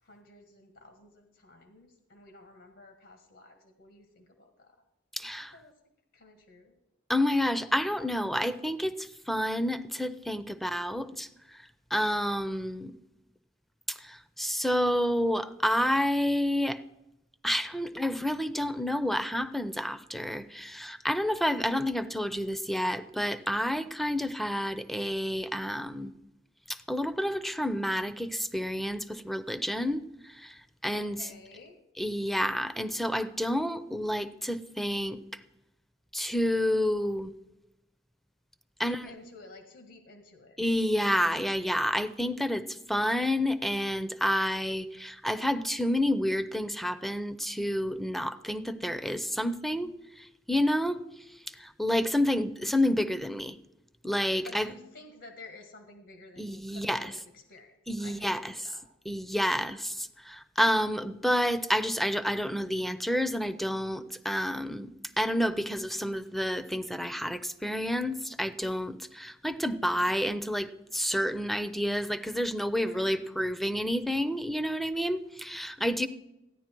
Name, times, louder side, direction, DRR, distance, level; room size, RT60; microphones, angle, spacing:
voice 1, 0.0-4.7 5.2-5.7 6.1-6.8 30.9-31.8 38.8-40.6 54.4-58.8 72.7-73.4, left 3 dB, 80° left, 1.7 m, -52 dB
voice 2, 5.1-5.5 7.1-12.9 13.9-16.8 17.4-26.1 26.7-31.3 32.0-35.2 36.1-37.3 38.8-39.1 40.6-53.6 54.0-54.7 56.4-57.1 57.9-58.5 59.1-64.9 65.2-76.1, equal, ahead, 0.5 m, -29 dB
14.5 x 10.0 x 4.5 m
head